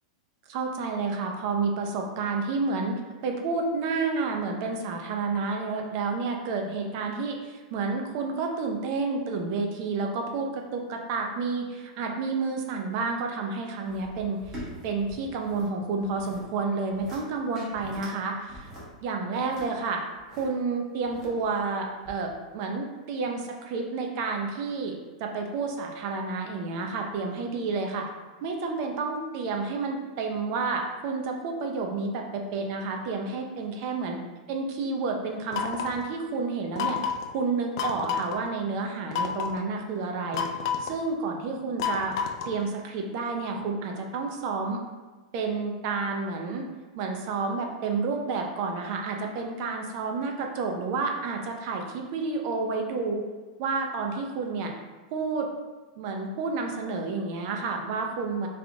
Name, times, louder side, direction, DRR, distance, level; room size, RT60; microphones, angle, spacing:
voice 1, 0.5-18.7 19.0-20.0 20.4-28.1 28.4-34.2 34.5-40.4 40.8-42.2 42.5-44.8 45.3-46.6 47.0-53.2 53.6-54.7 55.1-55.5 56.0-58.5, right 4 dB, 35° right, 2 dB, 0.5 m, -30 dB
sound 1, 13.8-15.7 16.0-16.5 16.8-17.2 17.6-18.1 18.5-20.5 21.0-21.6 22.0-22.1, equal, 10° right, 1.1 m, -43 dB
sound 2, 35.5-36.0 36.8-37.3 37.8-38.4 39.1-39.6 40.3-41.0 41.8-42.6, left 7 dB, 40° left, 0.3 m, -30 dB
3.5 x 3.4 x 3.7 m, 1.3 s
supercardioid pair, 175°, 4 cm